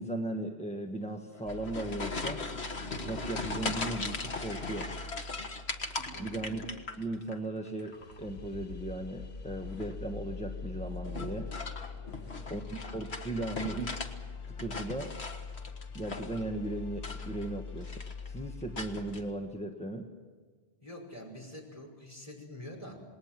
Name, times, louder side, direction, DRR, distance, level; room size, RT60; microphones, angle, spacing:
voice 1, 0.0-2.4 3.0-4.9 6.2-6.6 7.0-11.5 12.5-14.0 14.5-15.1 15.9-20.1, right 1 dB, 5° left, 3 dB, 1.3 m, -37 dB
sound 1, 1.3-7.4 7.7-8.2 9.6-10.0 11.0-14.1 14.4-16.5 16.9-17.5 17.8-18.3 18.8-19.2, left 3 dB, 85° left, 1.9 m, -39 dB
Curious Ambience, 1.4-19.2, left 4 dB, 60° left, 1.1 m, -44 dB
sound 2, 10.9-16.4, left 1 dB, 15° right, 4.5 m, -56 dB
voice 2, 12.1-12.4 20.8-23.0, left 1 dB, 35° left, -1 dB, 5.5 m, -46 dB
28.0 x 20.0 x 7.5 m, 1.5 s
omnidirectional pair, 1.1 m